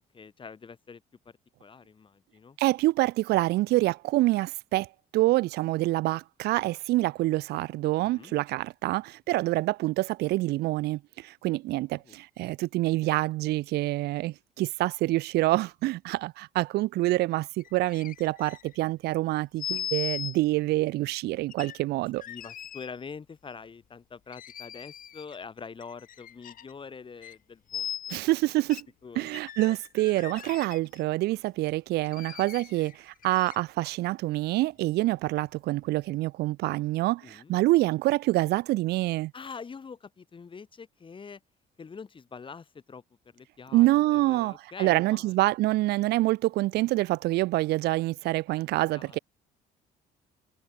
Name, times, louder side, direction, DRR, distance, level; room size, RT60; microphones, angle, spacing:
voice 1, 0.0-1.3 1.6-2.6 8.0-8.3 11.9-12.2 22.3-28.2 29.0-29.3 37.2-37.5 39.3-41.4 41.8-43.0 43.3-45.3 49.0-49.2, left 5 dB, 30° left, 3.0 m, -45 dB
voice 2, 2.6-22.2 28.1-28.9 29.2-39.3 43.7-49.2, right 18 dB, 75° right, 0.5 m, -26 dB
sound 1, 17.6-18.8 19.6-20.4 21.5-22.9 24.3-25.4 25.8-26.7 27.2-27.4 27.7-28.2 28.7-28.8 29.3-31.0 32.0-33.9 34.5-34.6, left 10 dB, 55° left, 3.7 m, -39 dB
cardioid pair, 110°, 17 cm